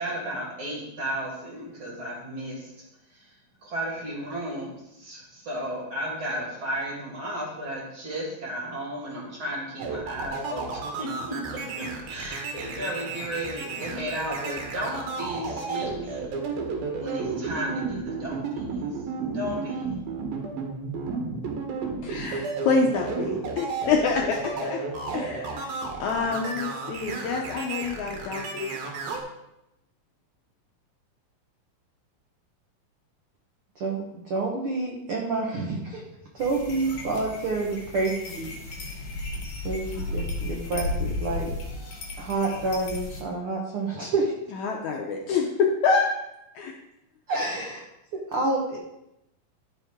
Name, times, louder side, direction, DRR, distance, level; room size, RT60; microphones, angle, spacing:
voice 1, 0.0-2.9 3.6-16.3 17.0-18.6 19.3-19.9, equal, 40° right, -3 dB, 2.9 m, -34 dB
sound 1, 9.8-29.2, right 4 dB, 85° right, 3.2 m, -32 dB
voice 2, 22.0-24.8 25.1-28.8 44.6-46.1 46.6-46.7, left 5 dB, 75° left, 1 dB, 1.8 m, -26 dB
voice 3, 33.8-36.0 36.4-38.9 39.6-41.5 42.2-44.3 47.3-47.8 48.1-48.8, right 3 dB, 65° right, -2 dB, 1.4 m, -28 dB
sound 2, 36.4-43.2, left 2 dB, 50° left, 2.7 m, -34 dB
13.0 x 5.5 x 3.7 m, 0.87 s
omnidirectional pair, 4.1 m